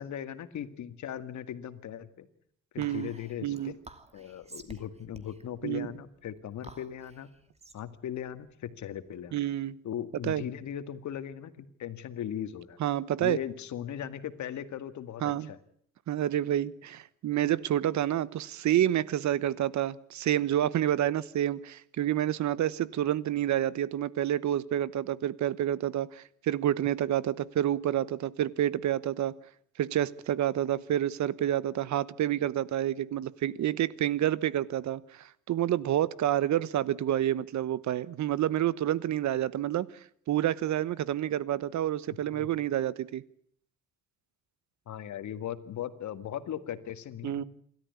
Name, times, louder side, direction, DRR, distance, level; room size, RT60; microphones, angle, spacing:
voice 1, 0.0-2.3 2.7-3.8 4.1-7.3 7.7-9.4 9.8-12.8 13.2-15.6 42.1-42.5 44.9-47.4, left 10 dB, 70° left, 11 dB, 2.0 m, -38 dB
Whispering, 2.8-9.5, right 2 dB, 20° right, 2.7 m, -52 dB
voice 2, 2.8-3.1 3.4-3.7 5.6-5.9 9.3-9.8 10.2-10.4 12.8-13.4 15.2-15.5 16.1-29.4 29.8-39.9 40.3-43.2 47.2-47.4, right 12 dB, 70° right, 19 dB, 1.1 m, -28 dB
27.5 x 13.5 x 9.6 m, 0.65 s
cardioid pair, 90°, 30 cm